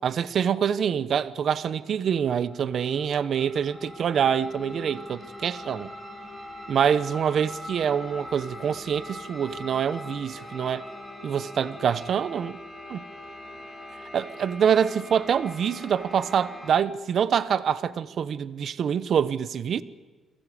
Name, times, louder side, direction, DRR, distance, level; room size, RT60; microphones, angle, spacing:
voice 1, 0.0-5.9 6.7-10.8 11.2-12.6 12.9-13.0 14.1-19.8, right 8 dB, 60° right, 0.8 m, -25 dB
sound 1, 2.0-16.8, left 1 dB, 5° right, 7.4 m, -42 dB
30.0 x 22.0 x 5.0 m
cardioid pair, 90°, 0 cm